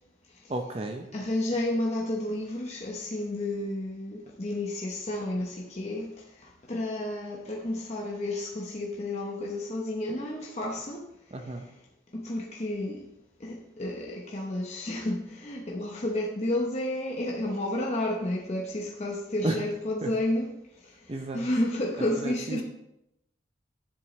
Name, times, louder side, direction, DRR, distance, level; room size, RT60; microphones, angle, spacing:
voice 1, 0.5-1.1 11.3-11.7 19.4-19.6 20.0-20.1 21.1-21.4 22.2-22.6, right 2 dB, 30° right, 5 dB, 0.6 m, -32 dB
voice 2, 1.1-11.1 11.4-11.5 12.1-13.1 13.4-20.5 20.8-22.6, left 1 dB, 35° left, -2 dB, 0.9 m, -31 dB
10.0 x 7.6 x 3.2 m, 0.83 s
head